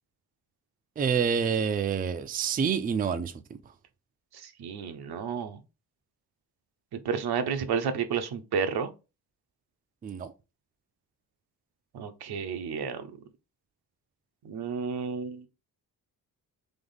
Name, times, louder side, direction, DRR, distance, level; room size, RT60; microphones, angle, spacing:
voice 1, 1.0-3.6 10.0-10.3, right 6 dB, 25° right, 0.4 m, -28 dB
voice 2, 4.4-5.6 6.9-8.9 11.9-13.1 14.4-15.4, right 6 dB, 85° right, 0.8 m, -31 dB
3.5 x 3.4 x 3.9 m
wide cardioid pair, 135°, 38 cm